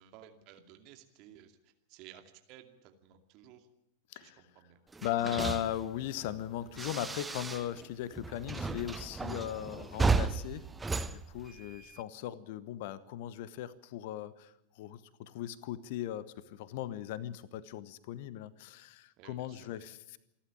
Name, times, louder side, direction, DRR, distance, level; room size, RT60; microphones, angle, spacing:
voice 1, 0.0-2.2 2.5-3.7 4.1-4.8 19.2-19.8, right 11 dB, 40° right, 6 dB, 2.5 m, -56 dB
voice 2, 4.1-4.4 5.0-10.7 11.0-20.2, left 12 dB, 50° left, 18 dB, 1.0 m, -38 dB
sound 1, 4.9-7.9 8.1-12.0, right 4 dB, 10° right, 0.9 m, -34 dB
27.5 x 12.0 x 8.7 m, 0.88 s
figure-of-eight pair, 90°, 0 cm